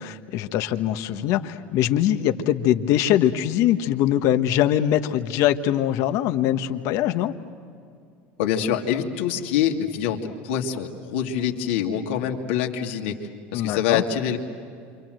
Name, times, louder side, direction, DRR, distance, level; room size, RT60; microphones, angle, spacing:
voice 1, 0.0-7.3 13.5-14.0, left 11 dB, 60° left, 8 dB, 1.4 m, -22 dB
voice 2, 8.4-14.4, left 9 dB, 85° left, 2 dB, 2.5 m, -25 dB
28.5 x 26.5 x 7.8 m, 2.4 s
supercardioid pair, 105°, 6 cm